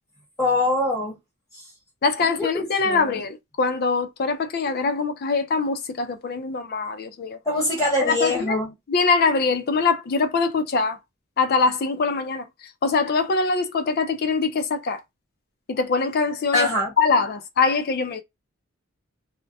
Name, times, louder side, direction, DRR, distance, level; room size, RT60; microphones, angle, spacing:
voice 1, 0.4-1.1 2.2-3.2 7.5-8.7 16.5-16.9, left 2 dB, 15° left, 0.8 m, -23 dB
voice 2, 2.0-7.4 8.0-8.6 8.9-11.0 11.4-15.0 15.7-16.7 17.0-18.2, left 4 dB, 50° left, 0.4 m, -23 dB
2.3 x 2.1 x 2.6 m
head